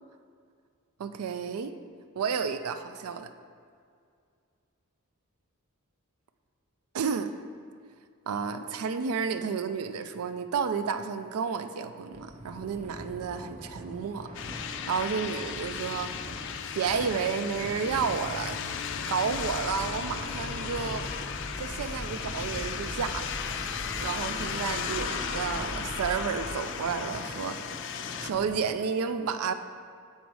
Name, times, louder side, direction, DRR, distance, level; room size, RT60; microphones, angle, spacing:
voice 1, 1.0-1.7 2.2-3.3 6.9-7.3 8.3-14.3 14.9-16.1 16.7-18.6 19.1-21.1 21.6-23.3 24.0-27.8 28.2-29.5, right 6 dB, 75° right, 9 dB, 0.4 m, -31 dB
sound 1, 12.1-28.6, equal, 30° right, 1.0 m, -44 dB
sound 2, 14.3-28.3, left 7 dB, 55° left, 0.4 m, -36 dB
sound 3, 19.3-26.5, equal, 5° left, 0.6 m, -41 dB
7.8 x 4.1 x 4.7 m, 2.3 s
head